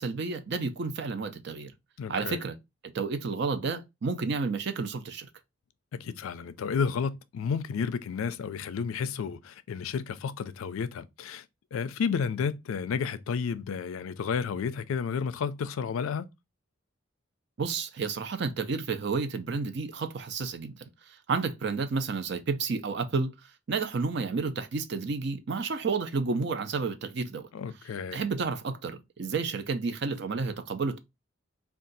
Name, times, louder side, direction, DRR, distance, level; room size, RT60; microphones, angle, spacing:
voice 1, 0.0-1.7 2.1-2.6 2.8-5.3 17.6-27.5 28.1-31.0, right 4 dB, 55° right, 0.5 m, -31 dB
voice 2, 2.0-2.4 5.9-11.4 11.7-16.3 27.5-28.2, left 6 dB, 80° left, 0.3 m, -31 dB
2.6 x 2.3 x 3.9 m
head